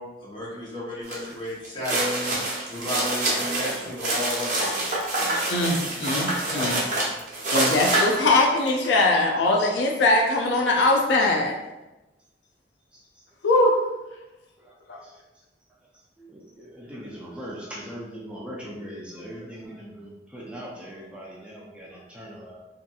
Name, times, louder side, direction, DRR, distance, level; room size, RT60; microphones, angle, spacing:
voice 1, 0.0-2.4 2.7-5.4 6.4-6.7, left 1 dB, 30° left, -6 dB, 0.8 m, -33 dB
sound 1, 1.1-1.3 1.6-9.0, right 2 dB, 45° right, 0.7 m, -26 dB
voice 2, 4.8-6.4 6.8-7.3 12.9-13.0 14.6-14.7 15.0-15.1 16.2-22.6, equal, 5° right, -5 dB, 0.4 m, -41 dB
voice 3, 5.5-6.8 7.5-11.5 13.4-13.7 14.9-15.0, left 2 dB, 70° left, 0 dB, 0.4 m, -21 dB
2.7 x 2.5 x 2.3 m, 1.0 s
head